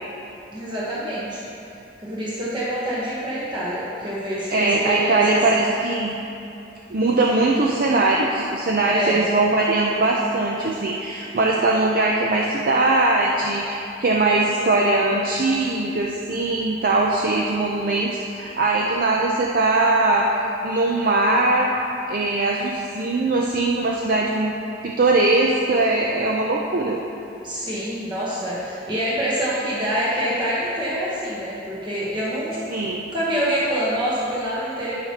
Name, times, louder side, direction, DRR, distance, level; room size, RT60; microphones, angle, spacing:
voice 1, 0.5-1.4 2.0-5.7 8.8-9.2 27.4-32.6 33.1-34.9, equal, 25° right, -8 dB, 1.1 m, -26 dB
voice 2, 4.5-6.2 6.9-20.3 20.6-21.7 22.1-24.5 24.8-27.0 32.7-33.0, right 2 dB, 50° right, -2 dB, 0.5 m, -21 dB
13.0 x 5.9 x 2.9 m, 2.8 s
head